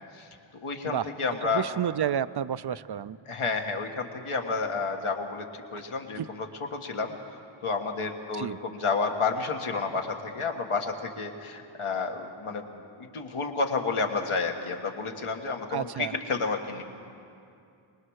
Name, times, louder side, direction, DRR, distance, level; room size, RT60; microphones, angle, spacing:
voice 1, 0.1-1.7 3.3-7.1 7.6-12.7 13.0-16.8, left 4 dB, 80° left, 3 dB, 1.7 m, -30 dB
voice 2, 1.5-3.2 6.2-6.3 8.4-8.6 15.7-16.1, right 9 dB, 55° right, 16 dB, 0.5 m, -30 dB
23.5 x 20.5 x 6.5 m, 2.5 s
wide cardioid pair, 90°, 50 cm